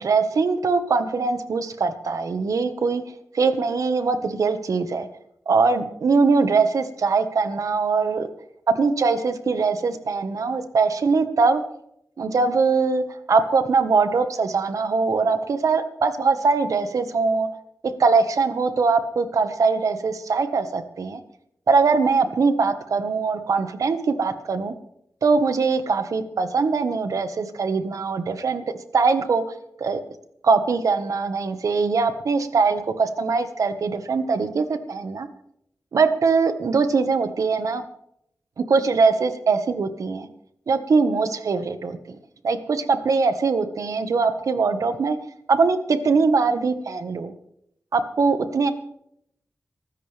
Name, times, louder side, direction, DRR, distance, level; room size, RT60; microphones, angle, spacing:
voice 1, 0.0-3.0 3.3-5.1 5.4-8.3 8.7-11.6 12.2-17.5 18.0-21.2 21.7-24.7 25.2-28.6 28.9-29.4 29.8-30.0 30.4-35.3 35.9-37.8 38.6-40.3 40.7-42.2 42.4-45.2 45.5-47.3 47.9-48.7, right 4 dB, 75° right, 9 dB, 1.5 m, -22 dB
24.0 x 13.5 x 3.5 m, 0.74 s
wide cardioid pair, 155°, 6 cm